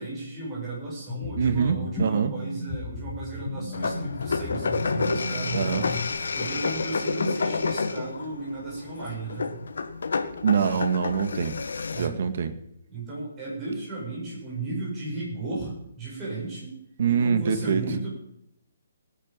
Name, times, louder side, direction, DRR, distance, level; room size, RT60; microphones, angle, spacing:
voice 1, 0.0-6.0 6.3-9.5 11.9-12.2 12.9-16.8 17.1-18.1, right 2 dB, 15° right, -6 dB, 7.5 m, -34 dB
sound 1, 1.1-6.1, left 2 dB, 5° left, 3.6 m, -35 dB
voice 2, 1.4-2.3 5.5-5.9 10.4-11.6 12.0-12.5 17.0-17.8, right 6 dB, 50° right, 11 dB, 1.8 m, -24 dB
sound 2, 3.7-12.1, left 4 dB, 80° left, 1.5 m, -29 dB
19.0 x 10.5 x 5.6 m, 0.77 s
hypercardioid pair, 170°, 0 cm